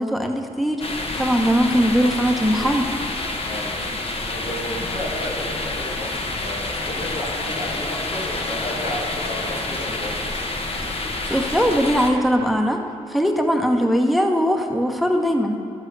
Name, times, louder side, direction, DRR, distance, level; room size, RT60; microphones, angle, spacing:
voice 1, 0.0-2.9 11.3-12.8 13.1-15.6, equal, ahead, 3 dB, 0.9 m, -20 dB
sound 1, 0.8-12.1, left 2 dB, 50° left, 1.1 m, -28 dB
voice 2, 3.4-10.3, equal, 85° left, -5 dB, 2.1 m, -32 dB
12.0 x 7.6 x 3.3 m, 2.7 s
supercardioid pair, 45°, 13 cm